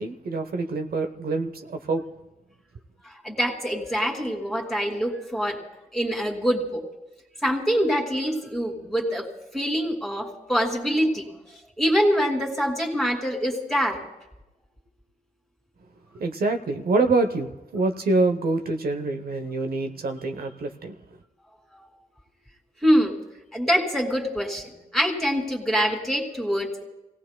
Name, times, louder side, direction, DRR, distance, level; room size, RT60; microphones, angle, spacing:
voice 1, 0.0-2.0 16.1-20.9, right 3 dB, 75° right, 7 dB, 0.8 m, -26 dB
voice 2, 3.0-5.6 5.9-6.8 7.4-9.3 9.5-11.3 11.8-14.0 21.7-21.8 22.8-23.1 23.5-26.8, equal, ahead, 1 dB, 2.6 m, -25 dB
29.0 x 17.5 x 2.2 m, 1.0 s
wide cardioid pair, 95°, 16 cm